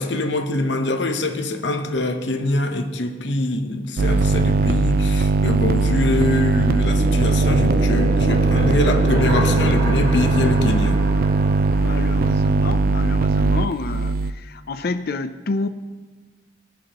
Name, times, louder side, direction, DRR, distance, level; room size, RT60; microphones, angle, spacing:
voice 1, 0.0-11.0, left 2 dB, 80° left, 1.0 m, -24 dB
sound 1, 4.0-14.3, right 3 dB, 55° right, 0.3 m, -19 dB
sound 2, 6.7-13.2, equal, 70° right, 2.7 m, -29 dB
voice 2, 11.8-15.7, left 3 dB, 60° left, 0.5 m, -29 dB
21.0 x 7.1 x 3.0 m
head